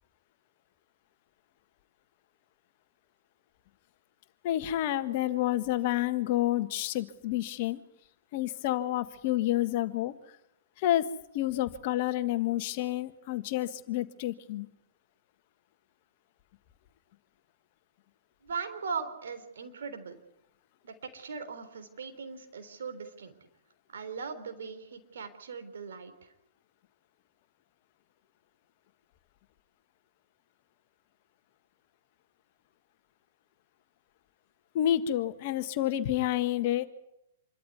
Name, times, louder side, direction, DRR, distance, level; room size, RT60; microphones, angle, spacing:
voice 1, 4.4-7.8 8.3-10.1 10.8-11.1 11.3-14.7 34.7-36.9, left 13 dB, 45° left, 11 dB, 1.6 m, -29 dB
voice 2, 18.4-20.2 20.8-23.3 23.9-26.3, right 5 dB, 70° right, 8 dB, 3.6 m, -39 dB
26.5 x 13.0 x 9.6 m, 0.83 s
figure-of-eight pair, 110°, 0 cm